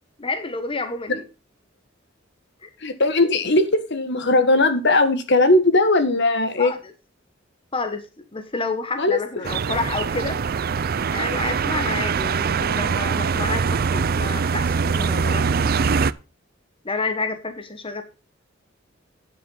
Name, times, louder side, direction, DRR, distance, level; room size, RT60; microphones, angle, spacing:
voice 1, 0.2-1.2 2.6-2.7 6.6-6.8 7.7-8.1 8.3-10.4 11.0-15.7 16.8-18.0, left 3 dB, 25° left, 8 dB, 1.2 m, -29 dB
voice 2, 2.8-6.7 9.0-9.5, left 2 dB, 60° left, 10 dB, 1.6 m, -19 dB
sound 1, 9.4-16.1, right 5 dB, 50° right, 0.5 m, -23 dB
9.7 x 7.7 x 5.5 m, 0.32 s
head